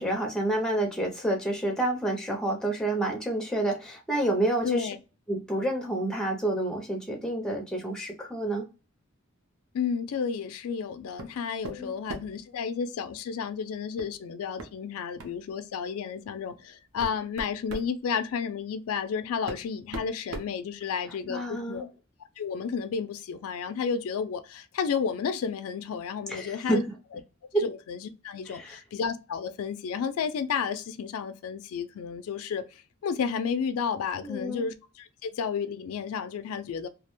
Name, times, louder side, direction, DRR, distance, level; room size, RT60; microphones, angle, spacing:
voice 1, 0.0-4.9 5.3-8.6 11.7-11.9 21.3-21.9 26.3-26.8 27.5-27.6 28.5-28.8 34.2-34.7, right 1 dB, 5° left, 0.4 m, -29 dB
voice 2, 4.6-5.0 9.7-21.9 22.4-26.8 27.6-36.9, left 6 dB, 70° left, 0.3 m, -32 dB
sound 1, 11.2-11.4 11.6-12.4 14.0-14.1 14.6-14.7 15.2-15.4 16.2-16.3 16.8-17.9 19.0-19.1 19.5-21.2, right 2 dB, 65° right, 0.5 m, -39 dB
2.3 x 2.1 x 2.9 m
head